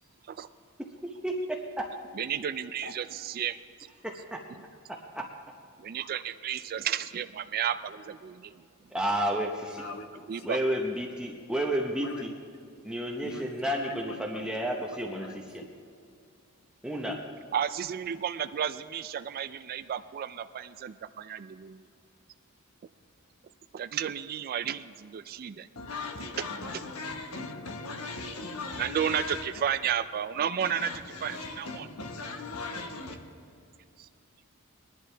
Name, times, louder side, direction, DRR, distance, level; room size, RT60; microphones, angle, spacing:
voice 1, 2.1-3.6 4.5-4.6 5.8-8.6 10.3-10.6 17.5-21.9 23.7-25.7 26.4-26.5 28.8-30.9 31.2-31.9 34.0-34.1, right 9 dB, 45° right, 0.3 m, -32 dB
voice 2, 4.0-4.4 5.1-5.2 8.9-9.8 10.4-12.3 12.8-15.3 15.5-15.6 16.8-17.2, right 1 dB, 5° right, 0.7 m, -31 dB
voice 3, 9.8-10.1 10.3-10.5 12.0-12.3 13.2-14.6 15.1-15.3 15.6-15.7 17.0-17.1 25.7-29.5 30.6-33.1, left 3 dB, 75° left, 1.3 m, -39 dB
20.5 x 11.0 x 3.4 m
head